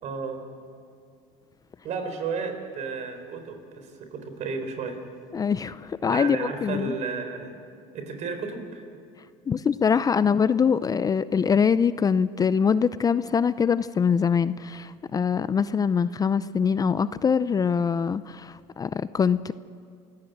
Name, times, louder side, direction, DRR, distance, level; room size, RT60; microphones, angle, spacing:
voice 1, 0.0-0.4 1.8-5.0 6.1-7.6 7.9-8.8, right 4 dB, 55° right, 7 dB, 4.4 m, -33 dB
voice 2, 5.3-6.9 9.5-19.5, left 6 dB, 25° left, 15 dB, 0.5 m, -23 dB
27.5 x 16.5 x 7.9 m, 2.4 s
supercardioid pair, 105°, 15 cm